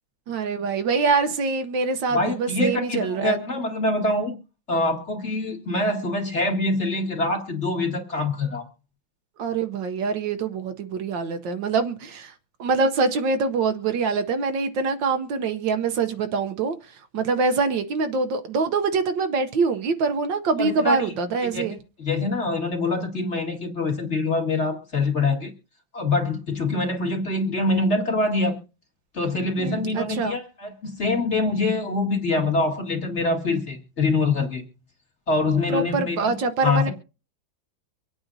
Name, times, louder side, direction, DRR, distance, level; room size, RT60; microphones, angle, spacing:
voice 1, 0.3-3.4 9.4-12.3 12.6-16.8 17.1-21.8 29.6-30.4 35.7-36.9, right 4 dB, 70° right, 1.5 m, -24 dB
voice 2, 2.1-4.4 4.7-8.6 20.6-21.1 21.5-21.6 22.0-25.5 25.9-28.6 29.1-34.6 35.3-36.3 36.6-36.9, left 2 dB, 35° left, 2.2 m, -24 dB
25.0 x 8.8 x 2.7 m
omnidirectional pair, 2.2 m